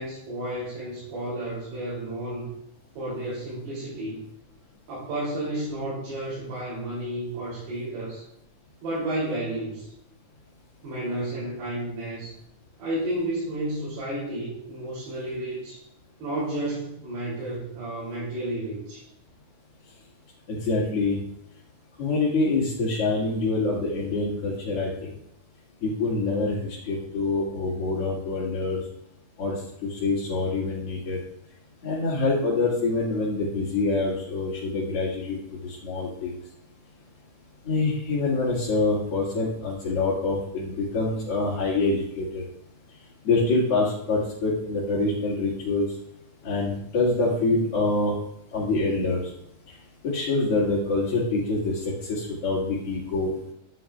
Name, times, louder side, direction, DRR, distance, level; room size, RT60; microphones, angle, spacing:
voice 1, 0.0-2.5 3.0-4.2 4.9-8.2 8.8-9.9 10.8-12.3 12.8-15.8 16.2-19.1, right 1 dB, 85° right, -8 dB, 5.1 m, -32 dB
voice 2, 20.5-21.2 22.0-25.1 25.8-28.8 29.4-31.2 31.8-35.4 35.6-36.4 37.6-42.4 43.2-45.9 46.4-48.1 48.5-49.2 50.0-53.3, left 3 dB, 45° left, -10 dB, 2.6 m, -25 dB
11.5 x 9.8 x 2.4 m, 0.76 s
omnidirectional pair, 4.5 m